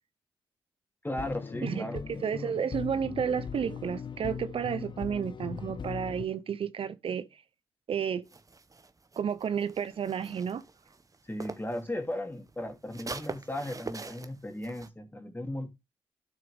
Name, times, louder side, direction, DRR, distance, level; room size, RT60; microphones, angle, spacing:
voice 1, 1.0-2.5 11.3-15.7, left 1 dB, 20° left, 2.8 m, -36 dB
sound 1, 1.1-6.3, left 6 dB, 50° left, 0.7 m, -39 dB
voice 2, 1.6-7.3 7.9-8.2 9.2-10.6, right 7 dB, 65° right, 0.8 m, -31 dB
sound 2, 8.3-11.8 12.1-14.9, right 3 dB, 35° right, 1.1 m, -43 dB
12.0 x 6.5 x 3.6 m
supercardioid pair, 45°, 10 cm